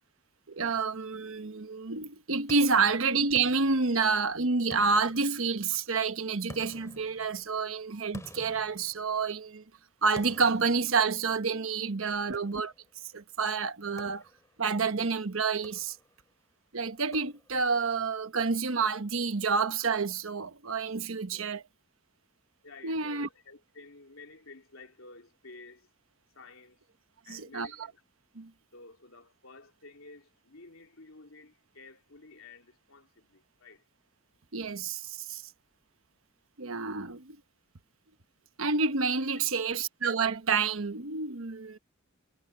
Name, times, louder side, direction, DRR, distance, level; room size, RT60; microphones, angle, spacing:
voice 1, 0.5-9.6 10.0-12.7 13.1-14.2 14.6-16.0 16.7-21.6 22.8-23.3 27.3-27.7 28.4-28.5 34.5-35.4 36.6-37.4 38.6-41.8, right 4 dB, 75° right, 1.2 m, -29 dB
sound 1, 2.5-4.3 4.7-5.9 6.5-9.5 10.1-11.6 12.3-13.0 14.0-14.7 15.5-16.3 17.1-17.8, left 1 dB, 15° left, 2.4 m, -51 dB
voice 2, 12.1-12.5 21.3-21.6 22.6-25.9 26.4-26.8 27.3-28.0 28.7-33.8 39.5-39.7, left 3 dB, 75° left, 3.4 m, -52 dB
head